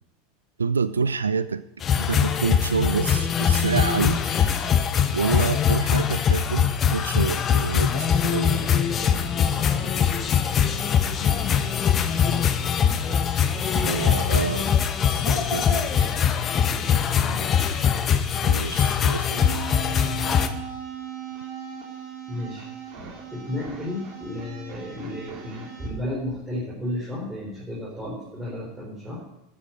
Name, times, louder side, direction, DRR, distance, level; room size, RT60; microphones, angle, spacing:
voice 1, 0.6-1.6 2.0-4.2 5.1-8.6 13.7-14.7 15.1-16.1 18.4-19.7, right 5 dB, 85° right, 15 dB, 0.4 m, -27 dB
sound 1, 1.8-20.5, left 8 dB, 30° left, 1.0 m, -22 dB
voice 2, 8.5-11.7 12.0-14.7 15.9-17.6 22.3-22.7 23.3-29.2, left 1 dB, 15° right, -5 dB, 4.4 m, -35 dB
sound 2, 19.4-25.9, right 6 dB, 45° right, 3.1 m, -38 dB
12.5 x 7.7 x 6.1 m, 0.87 s
figure-of-eight pair, 85°, 0 cm